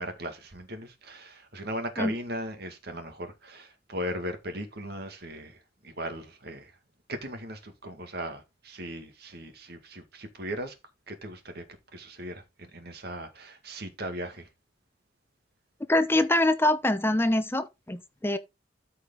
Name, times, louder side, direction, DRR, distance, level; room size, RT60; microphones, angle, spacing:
voice 1, 0.0-6.7 7.1-10.7 11.1-11.6 11.9-14.5, equal, 60° right, 2.1 m, -38 dB
voice 2, 15.9-18.4, left 1 dB, 15° left, 0.7 m, -24 dB
13.0 x 4.9 x 3.9 m
head